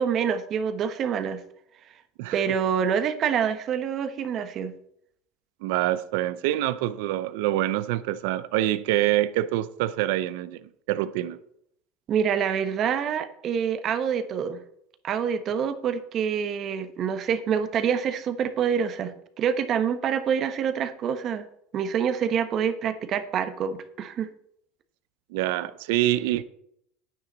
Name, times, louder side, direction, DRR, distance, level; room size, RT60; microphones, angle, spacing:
voice 1, 0.0-1.4 2.3-4.7 12.1-14.6 15.0-21.5 21.7-24.3, right 7 dB, 40° right, 1.2 m, -26 dB
voice 2, 5.6-11.4 25.3-26.4, right 14 dB, 75° right, 0.6 m, -26 dB
9.9 x 9.5 x 4.0 m
supercardioid pair, 130°, 0 cm